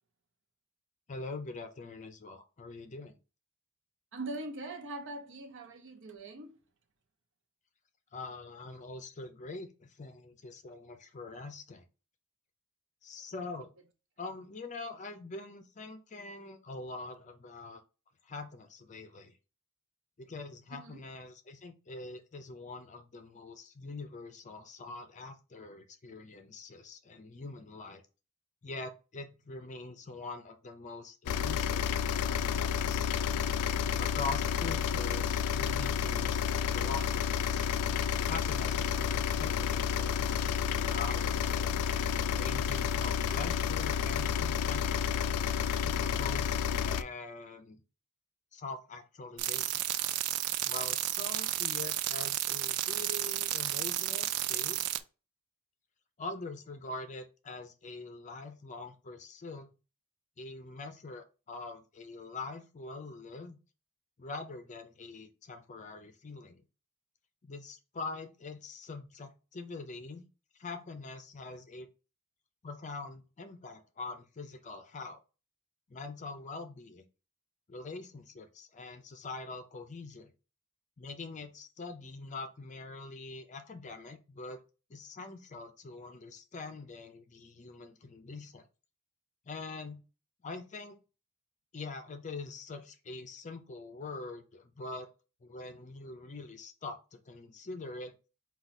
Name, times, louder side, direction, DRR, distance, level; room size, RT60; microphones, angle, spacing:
voice 1, 1.1-3.1 8.1-11.8 13.0-13.7 14.2-17.8 18.3-19.3 20.2-28.0 28.6-33.1 34.0-37.7 38.3-41.8 42.3-45.1 45.8-46.6 46.8-47.8 48.5-49.8 50.6-54.8 56.2-59.7 60.4-63.6 64.2-66.6 67.4-70.3 70.6-71.9 72.6-75.2 75.9-77.0 77.7-80.3 81.0-84.6 84.9-88.6 89.5-90.0 90.4-91.0 91.7-95.1 95.4-98.1, left 3 dB, 35° left, 0.5 m, -44 dB
voice 2, 4.1-6.6 20.7-21.1, right 2 dB, 60° right, 0.8 m, -42 dB
sound 1, 31.3-47.0, left 8 dB, 90° left, 0.3 m, -30 dB
sound 2, 49.4-55.0, right 13 dB, 85° right, 0.4 m, -32 dB
4.6 x 2.4 x 4.0 m
head